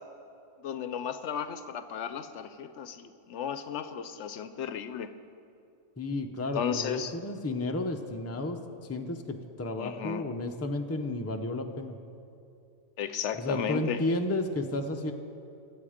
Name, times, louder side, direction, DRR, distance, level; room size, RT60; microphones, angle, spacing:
voice 1, 0.6-5.1 6.5-7.2 9.8-10.2 13.0-14.0, left 8 dB, 70° left, 11 dB, 0.9 m, -34 dB
voice 2, 6.0-8.6 8.9-11.9 13.4-15.1, left 2 dB, 15° left, 4 dB, 0.5 m, -32 dB
22.0 x 7.7 x 5.0 m, 2.6 s
omnidirectional pair, 1.3 m